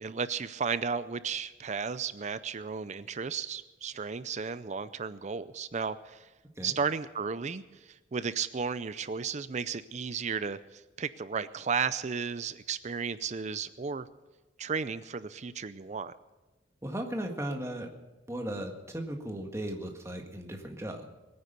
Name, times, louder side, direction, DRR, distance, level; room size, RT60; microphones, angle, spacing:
voice 1, 0.0-6.3 6.6-7.6 8.1-14.1 14.6-16.1, right 5 dB, 40° right, 15 dB, 0.5 m, -34 dB
voice 2, 16.8-17.9 18.3-21.1, right 1 dB, 15° right, 2 dB, 1.8 m, -36 dB
21.0 x 9.6 x 6.8 m, 1.1 s
head